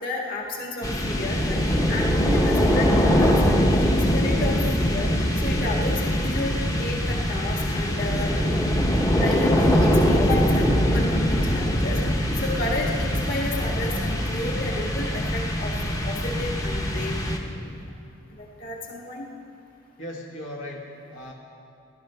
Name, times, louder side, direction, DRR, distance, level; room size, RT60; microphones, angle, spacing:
voice 1, 0.0-3.4 3.8-3.9 4.1-5.1 5.4-8.4 9.2-12.0 12.4-17.2 18.3-19.3, left 2 dB, 40° left, -1 dB, 1.9 m, -32 dB
sound 1, 0.8-17.8, equal, 15° left, 0.9 m, -22 dB
voice 2, 20.0-21.3, left 1 dB, 65° left, -2 dB, 1.6 m, -37 dB
15.5 x 12.0 x 5.7 m, 2.6 s
head